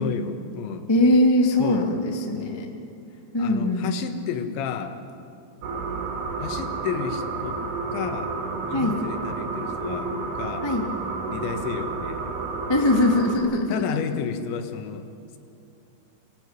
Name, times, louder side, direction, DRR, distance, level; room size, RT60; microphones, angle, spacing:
voice 1, 0.0-0.9 1.6-1.9 2.3-2.6 3.4-5.0 6.4-7.6 7.9-8.3 8.7-10.7 11.3-12.2 13.7-15.1, left 7 dB, 85° left, 7 dB, 3.8 m, -32 dB
voice 2, 0.9-2.7 3.3-4.0 8.7-9.0 10.6-10.8 12.7-13.7, left 1 dB, 10° left, 0 dB, 1.1 m, -21 dB
sound 1, 5.6-13.4, right 4 dB, 60° right, 4.2 m, -31 dB
27.0 x 19.5 x 9.7 m, 2.6 s
omnidirectional pair, 5.1 m